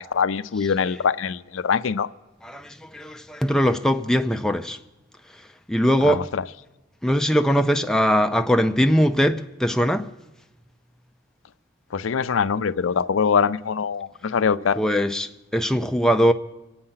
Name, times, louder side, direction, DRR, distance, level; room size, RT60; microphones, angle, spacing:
voice 1, 0.0-2.1 6.1-6.4 11.9-14.8, left 6 dB, 75° left, 0.5 m, -23 dB
voice 2, 2.4-4.8 5.7-6.3 7.0-10.1 14.8-16.3, equal, 5° left, 0.4 m, -21 dB
26.0 x 8.7 x 5.7 m
head